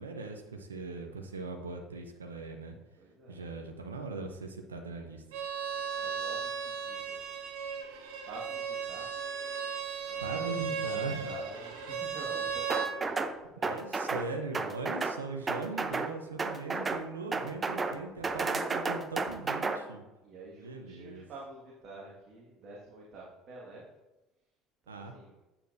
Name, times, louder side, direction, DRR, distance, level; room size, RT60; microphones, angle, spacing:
voice 1, 0.0-2.7 3.3-5.2 10.2-11.3 13.5-20.0 20.6-21.2 24.9-25.1, right 3 dB, 90° right, 5 dB, 0.6 m, -40 dB
voice 2, 3.0-3.4 6.0-7.2 8.3-9.2 10.1-13.8 15.8-16.0 18.1-18.4 20.2-23.9 24.8-25.4, right 2 dB, 50° right, -3 dB, 1.7 m, -48 dB
Bowed string instrument, 5.3-12.9, right 6 dB, 70° right, 1.1 m, -36 dB
sound 1, 12.7-13.3 13.6-14.3 14.5-15.2 15.5-16.1 16.4-17.0 17.3-18.0 18.2-19.8, right 4 dB, 25° right, 0.7 m, -32 dB
8.8 x 7.1 x 2.6 m, 1.0 s
hypercardioid pair, 65°, 0 cm